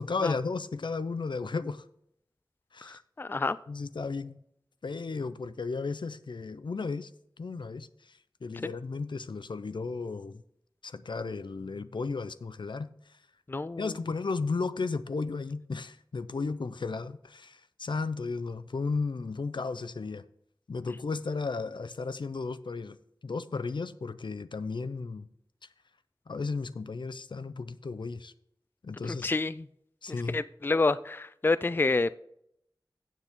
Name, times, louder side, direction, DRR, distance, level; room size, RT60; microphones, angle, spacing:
voice 1, 0.0-1.8 2.7-3.0 3.7-4.4 4.8-7.1 7.4-10.4 10.8-13.2 13.8-20.2 20.7-23.0 23.2-25.3 26.3-28.3 28.8-29.3 30.0-30.4, left 4 dB, 75° left, 14 dB, 0.5 m, -34 dB
voice 2, 2.8-3.6 8.6-8.7 13.5-13.9 29.0-29.7 30.3-32.2, left 3 dB, 25° left, 16 dB, 0.3 m, -28 dB
15.5 x 7.4 x 3.7 m, 0.74 s
wide cardioid pair, 65°, 8 cm